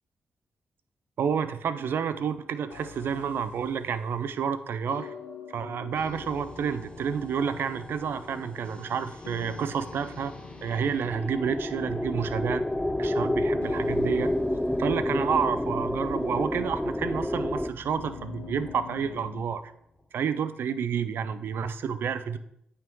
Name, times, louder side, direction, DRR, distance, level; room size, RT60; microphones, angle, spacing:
voice 1, 1.2-5.1 5.5-10.3 10.6-12.7 13.0-14.3 14.8-19.7 20.1-22.4, right 7 dB, 75° right, 12 dB, 0.5 m, -29 dB
sound 1, 2.7-4.3 4.9-8.1 9.2-12.0 12.4-12.5 13.6-16.8 18.0-19.5, left 7 dB, 85° left, 0.8 m, -46 dB
sound 2, 5.9-20.0, left 2 dB, 25° left, 1.7 m, -43 dB
sound 3, 10.6-17.7, left 1 dB, 5° left, 0.3 m, -29 dB
8.7 x 3.6 x 4.5 m, 0.73 s
supercardioid pair, 45°, 4 cm